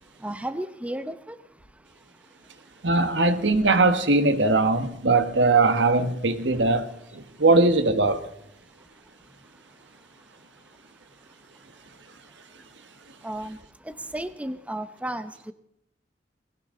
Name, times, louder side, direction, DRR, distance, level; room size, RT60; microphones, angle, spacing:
voice 1, 0.2-1.4 1.7-1.8 2.2-2.3 8.8-8.9 9.5-9.6 13.2-15.5, right 1 dB, 10° right, 0.7 m, -34 dB
voice 2, 2.8-6.9 7.1-8.2, right 3 dB, 85° right, 1.5 m, -20 dB
19.5 x 17.5 x 3.8 m
head